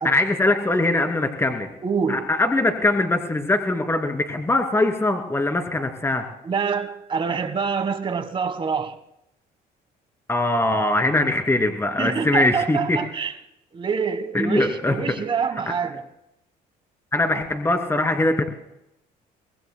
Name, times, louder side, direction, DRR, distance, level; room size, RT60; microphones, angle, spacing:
voice 1, 0.0-1.7 2.1-6.2 10.3-13.0 14.3-15.2 15.7-15.8 17.1-18.4, left 2 dB, 15° left, 2.6 m, -22 dB
voice 2, 1.8-2.3 6.4-9.0 12.0-13.3 13.7-16.0, right 6 dB, 30° right, 1.4 m, -26 dB
24.5 x 20.0 x 2.2 m
cardioid pair, 110°, 17 cm